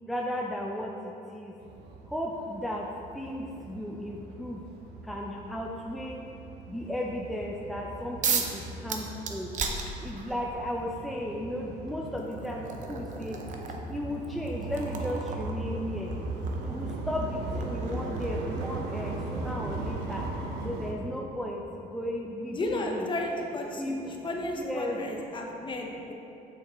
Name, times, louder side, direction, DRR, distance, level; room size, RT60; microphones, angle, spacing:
voice 1, 0.1-1.6 2.1-2.9 3.1-4.6 5.0-6.2 6.7-9.5 10.0-13.4 13.9-16.1 16.6-20.3 20.6-23.1 23.7-24.2 24.5-25.0, left 1 dB, ahead, -1 dB, 0.4 m, -35 dB
sound 1, 1.6-20.9, right 2 dB, 90° right, 0.8 m, -38 dB
sound 2, 8.2-8.6 8.9-10.4 11.6-11.7 12.2-18.8, right 5 dB, 45° right, 0.7 m, -36 dB
voice 2, 22.5-26.1, left 2 dB, 30° left, 1 dB, 0.9 m, -33 dB
7.8 x 6.3 x 3.0 m, 2.8 s
cardioid pair, 110°, 17 cm